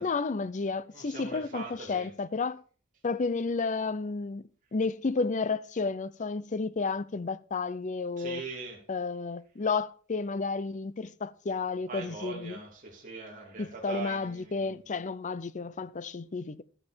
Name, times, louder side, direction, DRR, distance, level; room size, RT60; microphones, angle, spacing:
voice 1, 0.0-2.6 3.0-8.4 8.9-12.6 13.6-16.6, left 4 dB, 35° left, 0.5 m, -32 dB
voice 2, 0.7-2.1 8.2-8.8 11.9-14.8, right 4 dB, 35° right, 2.9 m, -41 dB
12.5 x 9.7 x 4.4 m
head